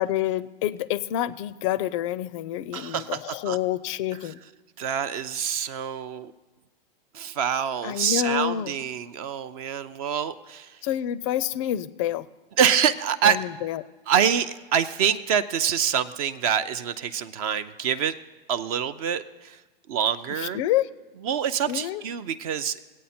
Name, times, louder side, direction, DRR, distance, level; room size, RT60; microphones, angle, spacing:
voice 1, 0.0-4.4 7.8-8.7 10.8-12.3 13.2-13.8 20.4-20.9 21.7-22.0, left 12 dB, 35° left, 17 dB, 0.4 m, -28 dB
voice 2, 2.7-3.6 4.2-4.3 4.8-6.3 7.1-10.8 12.6-13.4 14.1-18.2 18.5-19.6 19.9-20.6 21.2-22.8, right 8 dB, 40° right, 13 dB, 0.5 m, -26 dB
19.5 x 8.5 x 4.3 m, 1.2 s
hypercardioid pair, 135°, 29 cm